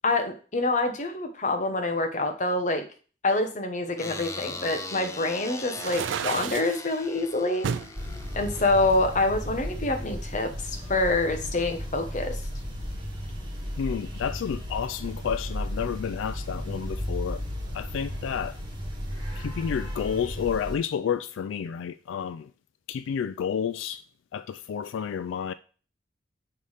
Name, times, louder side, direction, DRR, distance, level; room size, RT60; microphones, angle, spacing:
voice 1, 0.0-2.9 3.2-7.7 8.3-12.4, left 2 dB, 40° left, 0.9 m, -26 dB
sound 1, 4.0-9.3, left 3 dB, 15° left, 0.4 m, -40 dB
sound 2, 5.7-6.8 7.6-7.9 8.5-9.6, right 7 dB, 75° right, 0.4 m, -32 dB
sound 3, 7.9-20.8, equal, 20° right, 1.5 m, -34 dB
voice 2, 13.8-17.4 17.7-18.6 19.4-22.5 22.9-24.0 24.3-25.5, left 7 dB, 90° left, 0.3 m, -30 dB
6.8 x 3.2 x 5.5 m
head